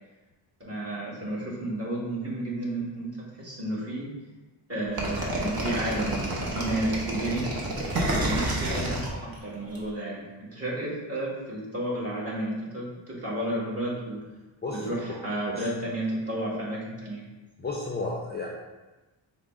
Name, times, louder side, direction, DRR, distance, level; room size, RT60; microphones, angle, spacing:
voice 1, 0.6-4.1 4.7-7.6 8.1-14.3 14.7-17.3, right 1 dB, 30° right, -6 dB, 1.5 m, -32 dB
sound 1, 5.0-9.8, right 1 dB, 45° right, 0.9 m, -29 dB
voice 2, 14.6-15.2 15.6-15.7 17.6-18.5, left 3 dB, 20° left, -3 dB, 0.5 m, -33 dB
4.8 x 2.1 x 3.6 m, 1.1 s
cardioid pair, 75°, 49 cm